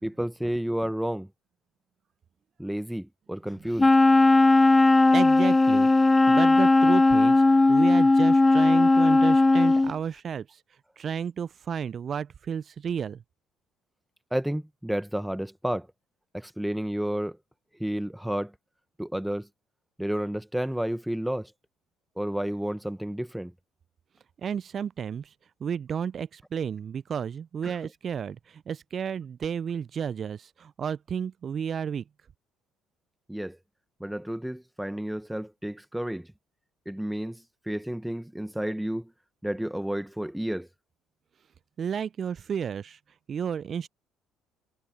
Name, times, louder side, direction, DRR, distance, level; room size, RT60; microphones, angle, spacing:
voice 1, 0.0-1.3 2.6-3.9 14.3-15.9 16.3-17.4 17.8-18.5 19.0-19.5 20.0-21.5 22.2-23.5 27.6-27.8 33.3-33.6 34.0-36.3 36.8-39.1 39.4-40.7, right 1 dB, 5° right, 1.4 m, -31 dB
Wind instrument woodwind instrument, 3.8-9.9, left 2 dB, 20° left, 0.4 m, -18 dB
voice 2, 5.1-5.9 6.3-10.6 11.0-13.2 24.4-25.3 25.6-32.0 41.8-43.0 43.3-43.9, right 7 dB, 45° right, 0.5 m, -32 dB
hypercardioid pair, 50°, 0 cm